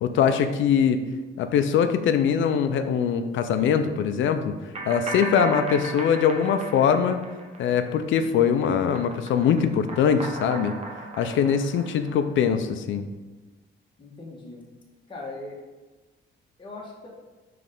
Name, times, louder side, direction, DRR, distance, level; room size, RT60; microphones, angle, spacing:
voice 1, 0.0-1.0 1.4-4.5 4.9-7.2 7.6-10.7 11.2-13.1, left 7 dB, 75° left, 9 dB, 0.5 m, -22 dB
sound 1, 4.7-8.2 8.5-12.4, right 2 dB, 35° right, 0.9 m, -37 dB
voice 2, 14.0-14.6 15.1-15.6 16.6-17.1, left 2 dB, 25° left, -3 dB, 1.3 m, -39 dB
5.2 x 3.4 x 5.3 m, 1.2 s
cardioid pair, 90°, 20 cm